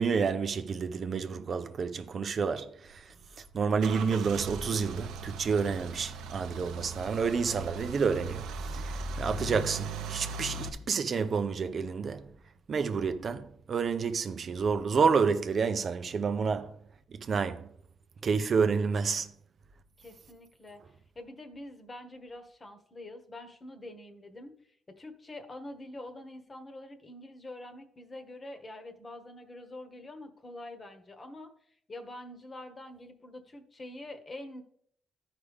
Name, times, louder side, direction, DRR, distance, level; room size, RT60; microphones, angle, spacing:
voice 1, 0.0-3.1 3.5-8.4 8.7-12.3 12.7-16.8 17.2-17.7 18.2-19.3, right 5 dB, 50° right, 0.5 m, -29 dB
Car / Engine starting / Idling, 2.9-10.7, right 3 dB, 90° right, 0.7 m, -38 dB
voice 2, 20.0-31.5 31.9-34.6, left 1 dB, 30° left, 1.2 m, -46 dB
12.5 x 4.9 x 3.5 m
cardioid pair, 90°, 0 cm